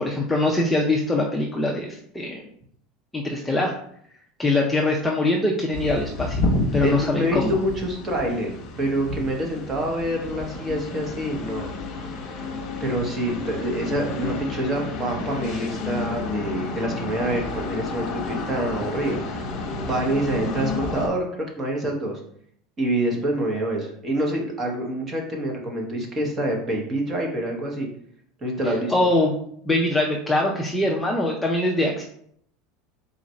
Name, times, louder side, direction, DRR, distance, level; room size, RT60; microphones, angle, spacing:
voice 1, 0.0-2.4 3.1-3.8 4.4-7.6 28.7-29.4 29.7-32.0, left 2 dB, 5° left, -2 dB, 0.4 m, -23 dB
sound 1, 5.7-21.1, left 3 dB, 45° left, 0.9 m, -30 dB
voice 2, 6.8-8.5 8.8-11.7 12.8-19.2 19.8-22.2 22.8-27.9 28.4-28.9, right 1 dB, 20° right, 1 dB, 1.0 m, -26 dB
3.9 x 2.5 x 4.2 m, 0.66 s
supercardioid pair, 150°, 0 cm